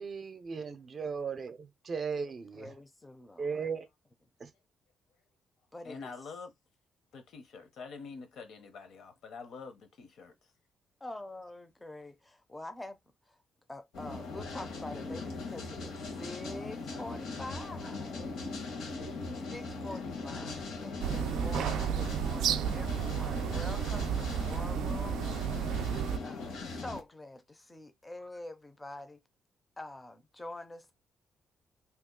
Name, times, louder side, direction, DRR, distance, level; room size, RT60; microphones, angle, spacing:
voice 1, 0.0-1.6 1.8-2.7 3.4-3.8 4.4-4.5, right 5 dB, 40° right, 0.5 m, -36 dB
voice 2, 2.4-3.6 5.7-6.1 11.0-13.0 13.3-13.4 13.7-18.7 19.5-29.2 29.8-30.9, left 2 dB, 10° left, 0.5 m, -46 dB
voice 3, 5.8-6.5 7.1-10.3, left 5 dB, 65° left, 0.7 m, -46 dB
sound 1, 13.9-27.0, left 3 dB, 90° left, 1.2 m, -40 dB
sound 2, 21.0-26.2, right 9 dB, 90° right, 0.3 m, -32 dB
2.8 x 2.3 x 3.6 m
cardioid pair, 140°, 0 cm